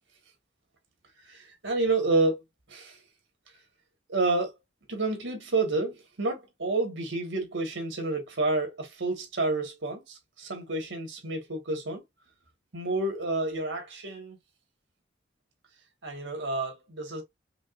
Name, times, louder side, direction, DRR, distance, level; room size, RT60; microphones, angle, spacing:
voice 1, 1.3-2.4 2.7-3.0 4.1-4.5 4.9-12.0 12.7-14.4 16.0-17.2, right 2 dB, 80° right, 1.7 m, -29 dB
5.1 x 2.9 x 2.5 m
head